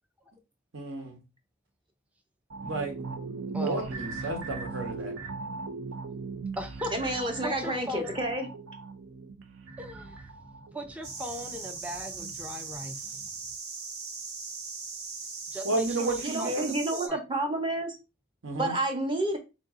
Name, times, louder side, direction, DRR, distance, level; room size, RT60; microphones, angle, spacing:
voice 1, 0.7-1.2 2.6-3.1 3.6-5.1 15.6-16.8 18.4-18.7, right 2 dB, 70° right, 1.2 m, -32 dB
sound 1, 2.5-11.8 12.2-12.3, right 4 dB, 90° right, 0.6 m, -39 dB
voice 2, 3.5-3.9 6.5-8.3 9.7-13.3 15.5-16.6 16.9-17.2, equal, 5° right, 0.4 m, -39 dB
voice 3, 6.9-8.5 16.2-18.0 18.6-19.4, right 1 dB, 25° right, 0.8 m, -29 dB
sound 2, 11.0-17.1, right 4 dB, 55° right, 0.8 m, -39 dB
3.8 x 2.6 x 3.6 m
head